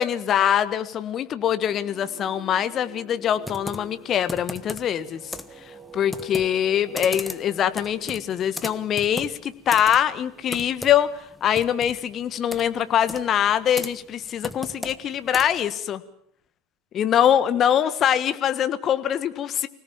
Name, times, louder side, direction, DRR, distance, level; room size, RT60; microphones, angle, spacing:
voice 1, 0.0-16.0 16.9-19.7, left 9 dB, 35° left, 12 dB, 1.4 m, -23 dB
Singing, 1.7-9.5, right 3 dB, 10° right, 2.7 m, -47 dB
Computer keyboard, 3.4-15.7, left 1 dB, 5° left, 1.4 m, -38 dB
25.0 x 18.0 x 7.3 m, 0.69 s
figure-of-eight pair, 75°, 0 cm